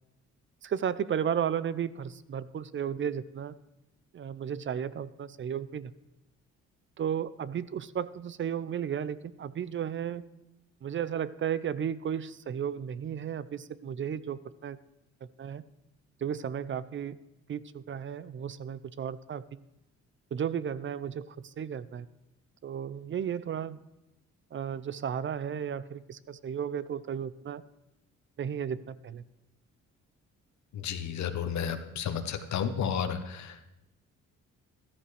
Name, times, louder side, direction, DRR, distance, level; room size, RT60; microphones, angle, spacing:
voice 1, 0.6-3.5 4.1-5.9 7.0-10.2 10.8-14.8 15.4-15.6 16.2-17.2 17.5-19.6 20.3-22.1 22.6-23.8 24.5-27.6 28.4-29.2, right 8 dB, 40° right, 17 dB, 0.6 m, -34 dB
voice 2, 30.7-33.7, left 7 dB, 65° left, 8 dB, 1.1 m, -32 dB
14.0 x 13.5 x 3.4 m, 0.93 s
cardioid pair, 90°, 30 cm